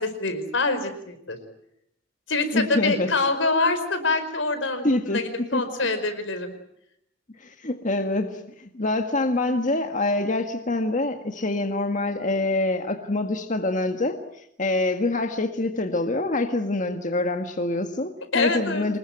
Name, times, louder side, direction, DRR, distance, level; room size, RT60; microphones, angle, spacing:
voice 1, 0.0-1.4 2.3-4.9 5.1-6.5 18.3-18.8, left 3 dB, 85° left, 9 dB, 5.0 m, -25 dB
voice 2, 2.5-3.1 4.8-5.6 7.4-19.0, left 2 dB, 45° left, 5 dB, 1.7 m, -25 dB
26.5 x 21.0 x 9.0 m, 0.76 s
head